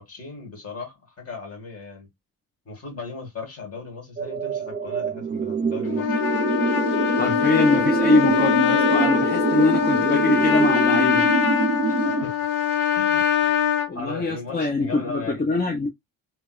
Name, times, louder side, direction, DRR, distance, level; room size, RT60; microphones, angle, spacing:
voice 1, 0.0-2.1 2.7-6.2 11.9-12.0 12.2-12.3 12.9-13.5 13.9-15.4, left 4 dB, 45° left, 2.1 m, -37 dB
sound 1, 4.2-12.2, right 5 dB, 20° right, 0.4 m, -25 dB
Trumpet, 5.9-13.9, left 8 dB, 65° left, 1.6 m, -22 dB
voice 2, 7.2-11.3 13.9-15.9, left 2 dB, 25° left, 0.7 m, -23 dB
3.3 x 3.1 x 2.3 m
cardioid pair, 120°, 35 cm